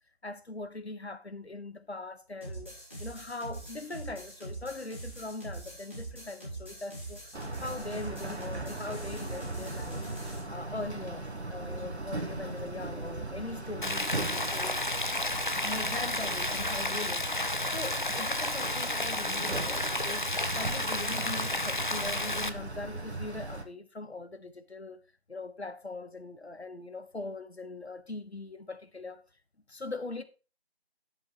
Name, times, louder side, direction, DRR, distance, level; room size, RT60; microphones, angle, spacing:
voice 1, 0.2-7.2 7.6-10.0 10.5-14.8 15.6-17.3 17.7-25.0 25.3-29.2 29.7-30.2, left 2 dB, 75° left, 1.3 m, -41 dB
sound 1, 2.4-10.4, right 2 dB, 10° right, 1.5 m, -43 dB
sound 2, 7.3-23.6, right 2 dB, 85° right, 1.5 m, -38 dB
Rain, 13.8-22.5, left 2 dB, 50° left, 0.7 m, -32 dB
11.0 x 7.6 x 3.1 m
figure-of-eight pair, 170°, 32 cm